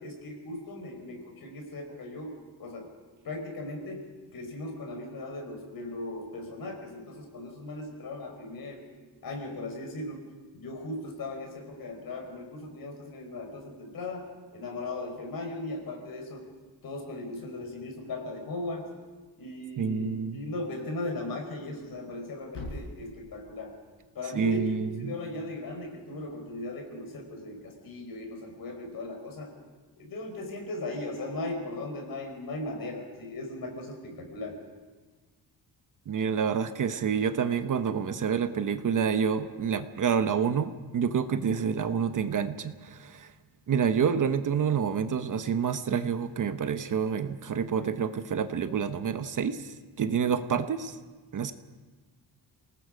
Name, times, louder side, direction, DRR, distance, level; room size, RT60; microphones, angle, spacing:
voice 1, 0.0-2.3 2.6-2.9 3.2-4.1 4.3-8.8 9.2-10.2 10.5-16.4 16.8-18.9 19.4-23.7 24.2-29.5 30.0-34.5, left 2 dB, 55° left, 3 dB, 5.3 m, -38 dB
voice 2, 19.8-20.4 24.3-25.2 36.1-43.3 43.7-49.7 50.0-51.0 51.3-51.5, right 7 dB, 50° right, 10 dB, 1.0 m, -28 dB
Thump thud, 21.6-25.7, left 2 dB, 80° left, 6.7 m, -47 dB
27.0 x 19.0 x 5.2 m, 1.3 s
cardioid pair, 130°, 41 cm